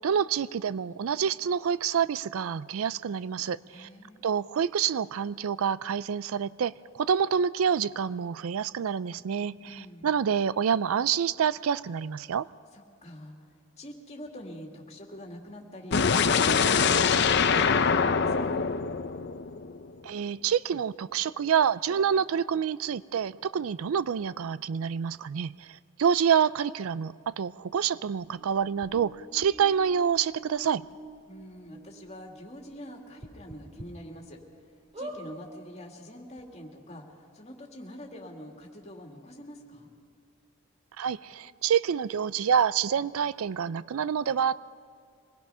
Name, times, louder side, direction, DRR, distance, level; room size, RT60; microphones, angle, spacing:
voice 1, 0.0-3.9 4.2-12.5 20.0-25.7 26.0-30.8 41.0-44.6, right 7 dB, 75° right, 18 dB, 0.4 m, -27 dB
voice 2, 3.7-4.2 9.6-10.2 12.7-13.3 13.8-16.0 16.3-18.8 31.3-34.4 35.0-39.9, equal, 30° left, 0 dB, 2.3 m, -44 dB
sound 1, 15.9-19.9, left 6 dB, 55° left, 0.6 m, -24 dB
sound 2, 28.1-35.7, right 2 dB, 50° right, 4.5 m, -52 dB
sound 3, 28.8-28.9 29.4-29.5 30.5-30.6 30.9-31.0 31.4-31.5 33.2-33.9 34.4-34.5 34.9-35.2 36.1-36.2 36.3-36.4, right 1 dB, 30° right, 2.5 m, -41 dB
25.0 x 20.0 x 5.6 m, 2.4 s
head